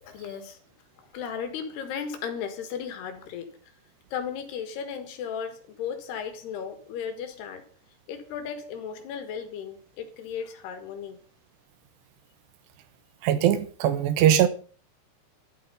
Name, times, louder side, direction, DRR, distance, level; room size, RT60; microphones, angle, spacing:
voice 1, 0.0-0.6 1.0-3.5 4.1-7.6 8.1-11.2, left 7 dB, 75° left, 3.8 m, -35 dB
voice 2, 13.2-14.5, right 10 dB, 85° right, 3.3 m, -21 dB
12.0 x 12.0 x 5.6 m
omnidirectional pair, 4.8 m